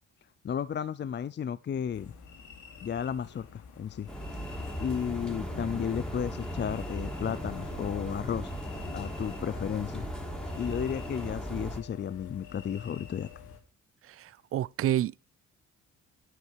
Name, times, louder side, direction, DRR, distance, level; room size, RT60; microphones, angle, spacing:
voice 1, 0.4-2.1 2.8-4.1 4.8-8.5 8.9-10.1 10.5-13.3, left 8 dB, 35° left, 0.6 m, -33 dB
Crickets in Kotor Montenegro, 1.9-13.6, left 7 dB, 85° left, 3.0 m, -48 dB
sound 1, 4.1-11.8, equal, 5° left, 3.6 m, -37 dB
voice 2, 14.1-15.2, right 12 dB, 50° right, 0.4 m, -29 dB
9.9 x 9.5 x 4.6 m
cardioid pair, 90°, 30 cm